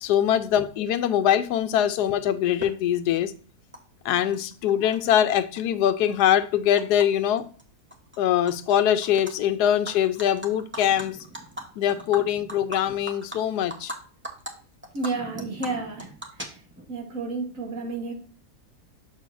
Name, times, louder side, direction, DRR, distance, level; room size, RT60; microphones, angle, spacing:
voice 1, 0.0-3.3 4.0-7.5 8.2-11.2 11.8-13.9, left 10 dB, 80° left, 1.1 m, -23 dB
Animal, 2.6-2.7 3.7-3.8 4.1-5.0 5.3-7.1 7.4-7.6 7.9-8.7 9.0-9.3 9.7-14.0 14.2-14.5 14.8-16.9, right 1 dB, 15° right, 0.5 m, -39 dB
voice 2, 14.9-16.1 16.4-16.6 16.9-18.1, right 3 dB, 55° right, 1.5 m, -31 dB
6.7 x 6.5 x 2.5 m
omnidirectional pair, 1.7 m